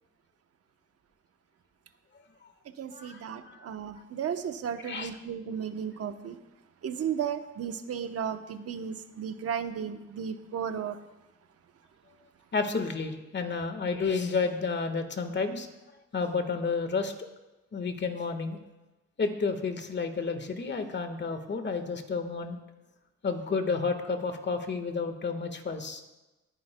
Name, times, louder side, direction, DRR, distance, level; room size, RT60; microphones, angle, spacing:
voice 1, 2.8-6.4 6.8-11.0, right 8 dB, 50° right, 1.0 m, -34 dB
voice 2, 12.5-15.7 16.1-17.1 17.7-18.6 19.2-22.6 23.2-26.0, left 4 dB, 35° left, 1.5 m, -31 dB
20.5 x 10.0 x 2.3 m
cardioid pair, 90°, 30 cm